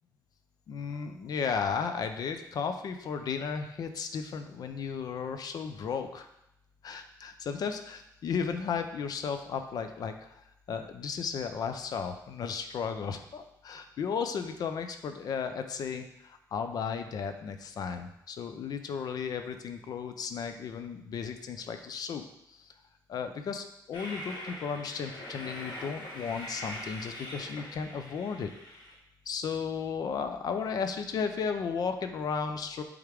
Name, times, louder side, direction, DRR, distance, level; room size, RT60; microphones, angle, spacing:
voice 1, 0.7-6.3 6.8-10.4 10.7-22.2 22.6-22.7 23.1-28.5 29.3-32.8, left 6 dB, 60° left, 7 dB, 0.5 m, -34 dB
Train, 23.9-28.9, left 1 dB, 75° left, 1.7 m, -42 dB
8.0 x 3.5 x 3.5 m, 0.81 s
cardioid pair, 140°, 8 cm